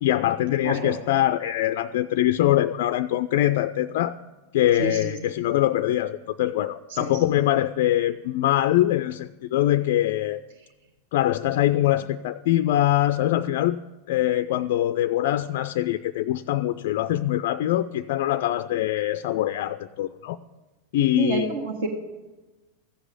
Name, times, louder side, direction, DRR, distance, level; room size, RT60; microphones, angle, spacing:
voice 1, 0.0-4.2 4.5-10.4 11.1-13.8 14.1-20.4 20.9-21.5, left 13 dB, 50° left, 11 dB, 0.4 m, -23 dB
voice 2, 0.6-1.0 4.8-5.0 6.9-7.1 21.2-21.9, right 3 dB, 60° right, 3 dB, 1.7 m, -28 dB
15.0 x 8.0 x 9.0 m, 1.2 s
figure-of-eight pair, 90°, 0 cm